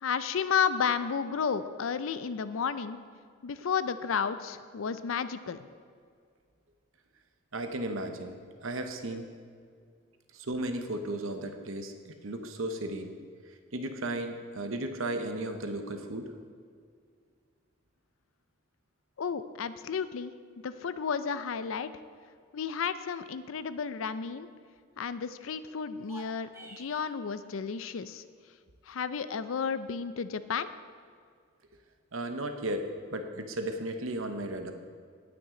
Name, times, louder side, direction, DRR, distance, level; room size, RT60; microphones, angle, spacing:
voice 1, 0.0-3.0 3.4-5.6 19.2-20.3 20.6-21.9 22.5-24.5 25.0-28.2 28.9-30.7, left 6 dB, 80° left, 13 dB, 0.5 m, -32 dB
voice 2, 7.5-9.3 10.3-13.1 13.7-16.3 32.1-34.7, right 1 dB, 80° right, 6 dB, 0.9 m, -35 dB
sound 1, 25.9-27.1, right 1 dB, 15° right, 0.8 m, -48 dB
17.5 x 6.1 x 3.8 m, 2.1 s
head